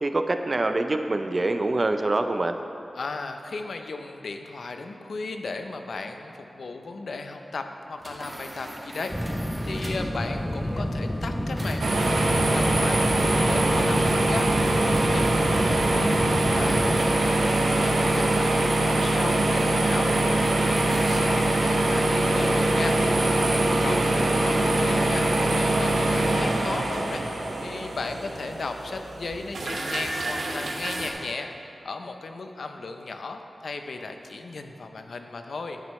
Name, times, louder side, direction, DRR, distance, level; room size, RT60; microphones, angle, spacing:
voice 1, 0.0-2.6 23.8-24.3, right 2 dB, 40° right, 7 dB, 0.5 m, -25 dB
voice 2, 2.9-14.5 14.8-16.1 16.5-18.3 18.6-23.0 23.8-25.3 25.5-27.2 27.6-31.5 31.8-35.8, left 3 dB, 85° left, 6 dB, 0.6 m, -35 dB
sound 1, 8.0-10.2 11.6-21.4, right 1 dB, 25° right, 1.6 m, -43 dB
sound 2, 9.1-17.0, equal, 10° left, 0.6 m, -30 dB
sound 3, 11.8-31.1, right 1 dB, 85° right, 1.0 m, -23 dB
10.5 x 9.0 x 3.2 m, 2.7 s
wide cardioid pair, 75°, 0 cm